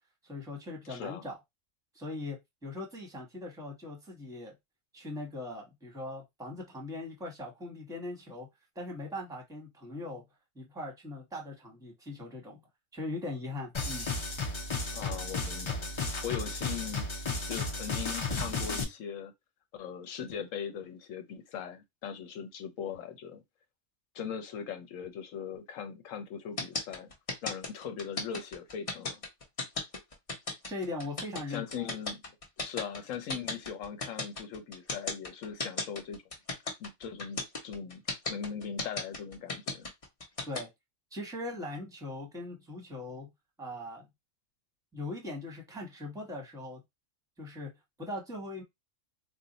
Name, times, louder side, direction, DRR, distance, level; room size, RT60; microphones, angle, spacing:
voice 1, 0.2-1.4 1.9-4.5 4.9-8.5 8.7-10.2 10.5-12.6 12.9-14.1 30.7-31.9 40.4-40.7 41.1-43.3 43.6-44.1 44.9-46.8 47.4-47.7 48.0-48.6, left 2 dB, 5° right, 0.9 m, -40 dB
voice 2, 0.8-1.2 14.9-17.1 17.5-19.3 19.7-23.4 24.1-27.1 27.4-29.2 31.5-32.2 32.6-36.2 36.8-38.0 38.3-39.9, left 7 dB, 80° left, 1.0 m, -40 dB
sound 1, 13.7-18.8, left 3 dB, 50° left, 0.3 m, -33 dB
sound 2, 26.6-40.6, left 3 dB, 35° left, 0.7 m, -35 dB
2.6 x 2.1 x 3.9 m
omnidirectional pair, 1.3 m